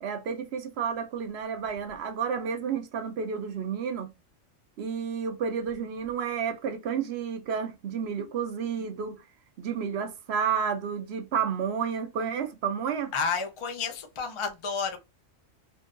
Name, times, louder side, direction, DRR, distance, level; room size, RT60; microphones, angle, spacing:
voice 1, 0.0-4.1 4.8-9.2 9.6-13.1, right 7 dB, 60° right, 0.8 m, -31 dB
voice 2, 13.1-15.0, left 5 dB, 40° left, 0.4 m, -31 dB
3.6 x 2.7 x 2.5 m
omnidirectional pair, 1.4 m